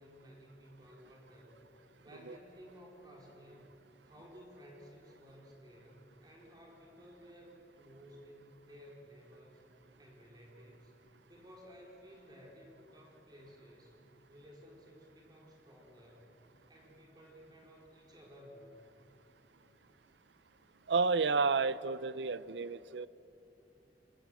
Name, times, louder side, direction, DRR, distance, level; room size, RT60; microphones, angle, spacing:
voice 1, 0.0-1.6 2.0-3.8 4.0-9.6 10.0-10.9 11.3-14.0 14.3-16.3 16.7-18.8, equal, 25° right, -2 dB, 4.3 m, -56 dB
voice 2, 20.9-23.1, right 4 dB, 80° right, 16 dB, 0.6 m, -31 dB
26.5 x 22.5 x 7.7 m, 2.9 s
head